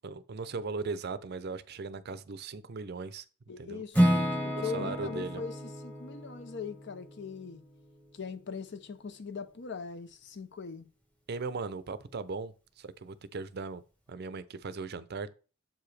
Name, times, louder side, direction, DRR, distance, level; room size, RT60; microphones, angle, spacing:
voice 1, 0.0-3.2 3.6-3.8 4.5-5.4 11.3-13.8 14.1-15.3, right 4 dB, 50° right, 0.5 m, -38 dB
voice 2, 3.5-7.6 8.1-10.9, left 5 dB, 60° left, 0.6 m, -40 dB
Acoustic guitar / Strum, 3.9-8.0, equal, 10° left, 1.2 m, -31 dB
7.5 x 4.8 x 3.3 m
head